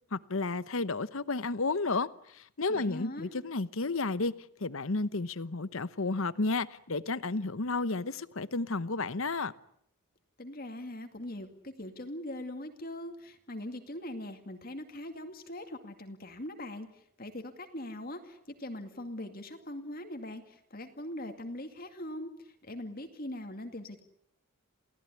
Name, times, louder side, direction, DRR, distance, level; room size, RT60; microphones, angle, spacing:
voice 1, 0.1-4.3 4.6-9.5, left 3 dB, 65° left, 1.0 m, -32 dB
voice 2, 2.7-3.3 10.4-24.0, left 1 dB, 40° left, 2.3 m, -41 dB
29.0 x 18.0 x 9.9 m
head